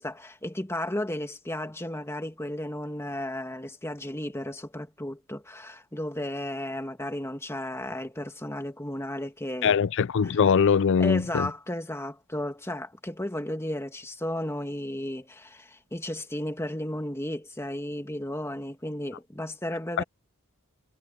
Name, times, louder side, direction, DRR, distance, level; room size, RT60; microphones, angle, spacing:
voice 1, 0.0-9.8 10.2-10.4 11.0-20.0, left 1 dB, 10° left, 2.0 m, -34 dB
voice 2, 9.6-11.5 20.0-20.1, left 6 dB, 55° left, 0.4 m, -22 dB
head